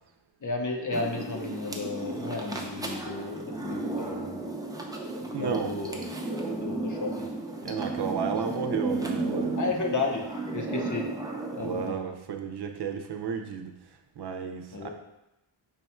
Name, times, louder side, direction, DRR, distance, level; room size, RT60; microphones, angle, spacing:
voice 1, 0.4-4.4 5.2-6.1 6.5-7.3 9.6-10.2 10.5-11.1 11.6-12.0 14.7-14.9, left 3 dB, 45° left, 1 dB, 0.7 m, -33 dB
sound 1, 0.9-11.9, right 2 dB, 10° right, 0.5 m, -34 dB
voice 2, 5.3-5.7 7.6-9.7 11.6-13.7 14.2-14.9, right 6 dB, 65° right, 5 dB, 0.6 m, -32 dB
5.6 x 2.3 x 4.2 m, 0.91 s
wide cardioid pair, 105°, 44 cm